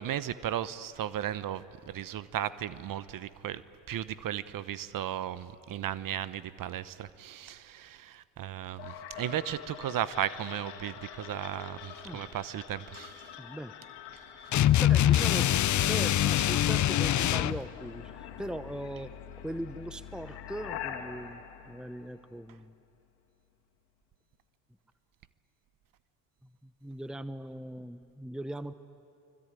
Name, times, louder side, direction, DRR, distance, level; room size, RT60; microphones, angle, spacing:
voice 1, 0.0-3.6 3.9-13.2, right 11 dB, 50° right, 15 dB, 1.0 m, -35 dB
sound 1, 8.8-22.7, left 9 dB, 70° left, 2.6 m, -45 dB
voice 2, 13.4-13.7 14.8-19.1 19.4-22.7 26.6-28.7, right 1 dB, ahead, 13 dB, 0.9 m, -40 dB
sound 2, 14.5-17.6, left 12 dB, 45° left, 0.7 m, -24 dB
24.5 x 24.5 x 9.1 m, 2.6 s
hypercardioid pair, 65°, 41 cm